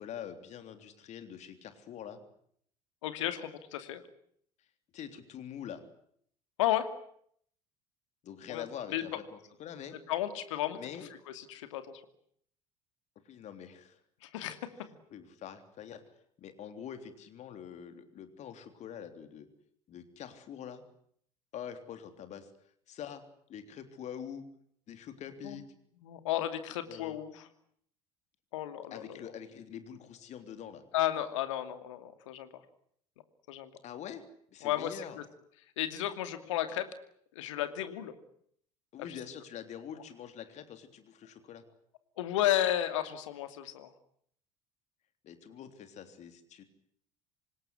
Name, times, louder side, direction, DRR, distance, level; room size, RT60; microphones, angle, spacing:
voice 1, 0.0-2.2 4.9-5.8 8.2-10.0 10.7-11.1 13.3-14.0 14.8-16.0 16.4-19.5 19.9-20.8 21.5-22.5 22.9-23.2 23.5-24.4 24.9-25.6 26.9-27.2 28.9-30.8 33.8-34.2 34.5-35.2 38.9-41.6 45.2-46.6, left 9 dB, 45° left, 9 dB, 3.5 m, -45 dB
voice 2, 3.0-4.0 6.6-6.9 8.5-8.6 8.9-9.0 10.1-10.8 11.3-12.0 14.2-14.7 25.4-25.6 26.0-27.5 28.5-29.3 30.9-32.5 33.5-33.7 34.6-35.2 35.8-36.9 37.3-38.1 42.2-43.9, left 12 dB, 65° left, 10 dB, 2.6 m, -33 dB
26.5 x 20.0 x 9.9 m, 0.67 s
figure-of-eight pair, 65°, 17 cm